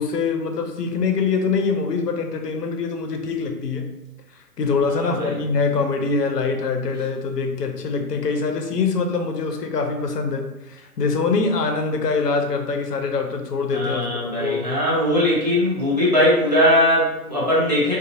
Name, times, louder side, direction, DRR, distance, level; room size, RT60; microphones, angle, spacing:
voice 1, 0.0-3.9 4.3-14.9, left 4 dB, 80° left, 4 dB, 0.6 m, -24 dB
voice 2, 4.9-5.3 13.7-18.0, left 1 dB, 30° right, -8 dB, 0.5 m, -20 dB
2.5 x 2.5 x 2.5 m, 0.97 s
figure-of-eight pair, 150°, 47 cm